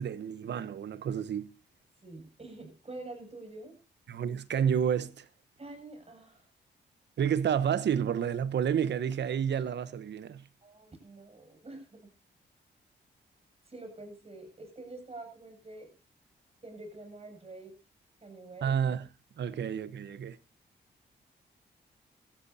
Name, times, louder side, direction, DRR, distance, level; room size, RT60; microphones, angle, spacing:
voice 1, 0.0-1.5 4.1-5.2 7.2-10.4 18.6-19.0 19.4-20.4, right 8 dB, 70° right, 1.0 m, -30 dB
voice 2, 2.0-3.8 5.6-6.5 10.6-12.1 13.7-15.9 16.6-17.7 18.2-18.7, right 2 dB, 35° right, 7.3 m, -46 dB
17.0 x 14.0 x 2.8 m
cardioid pair, 60°, 19 cm